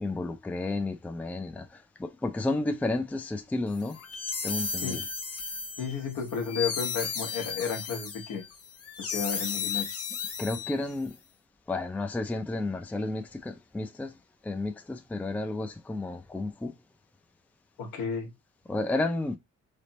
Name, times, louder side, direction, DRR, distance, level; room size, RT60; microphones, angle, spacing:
voice 1, 0.0-4.0 4.4-5.0 10.4-11.2 11.7-14.1 14.4-16.7 18.7-19.4, left 2 dB, 5° left, 0.4 m, -32 dB
sound 1, 3.8-11.1, left 6 dB, 50° left, 0.8 m, -34 dB
voice 2, 5.8-8.4 9.0-9.9 17.8-18.3, left 6 dB, 75° left, 1.1 m, -32 dB
3.3 x 2.0 x 4.0 m
cardioid pair, 90°, 30 cm